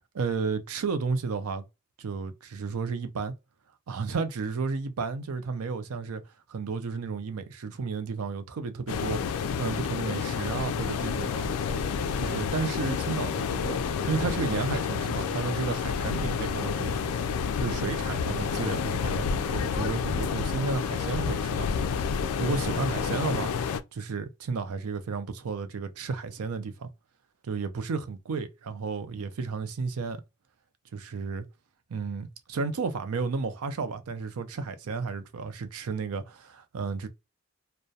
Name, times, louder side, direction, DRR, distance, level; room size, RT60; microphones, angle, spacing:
voice 1, 0.1-1.6 2.0-3.3 3.9-6.2 6.5-11.5 12.2-17.1 17.6-21.7 22.4-23.5 23.9-26.9 27.4-30.2 30.9-31.5 31.9-37.1, right 4 dB, 80° right, 0.5 m, -32 dB
sound 1, 8.9-23.8, left 6 dB, 80° left, 0.3 m, -29 dB
sound 2, 10.7-21.5, left 1 dB, 5° left, 0.6 m, -48 dB
2.3 x 2.1 x 2.6 m
head